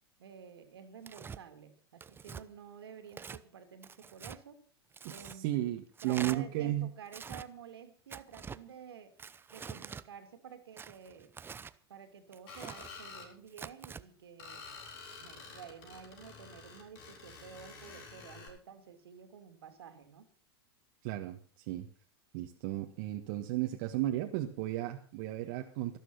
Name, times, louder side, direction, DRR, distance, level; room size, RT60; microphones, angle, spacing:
voice 1, 0.2-4.6 5.1-5.7 6.0-9.1 9.5-11.3 11.9-14.6 15.2-20.3, right 7 dB, 75° right, 8 dB, 2.7 m, -51 dB
Tearing, 1.0-1.4 2.0-2.4 3.1-3.4 3.8-4.4 4.9-5.4 6.0-6.4 7.1-7.5 8.1-8.6 9.2-10.0 10.8-11.7 12.3-12.9 13.5-14.0, right 6 dB, 15° right, 0.8 m, -45 dB
voice 2, 5.4-6.9 21.0-21.9 22.3-26.0, right 15 dB, 55° right, 3 dB, 1.6 m, -34 dB
Screech, 12.5-13.3 14.4-18.5, left 4 dB, 60° left, 6.9 m, -49 dB
13.0 x 13.0 x 5.7 m, 0.42 s
hypercardioid pair, 95°, 13 cm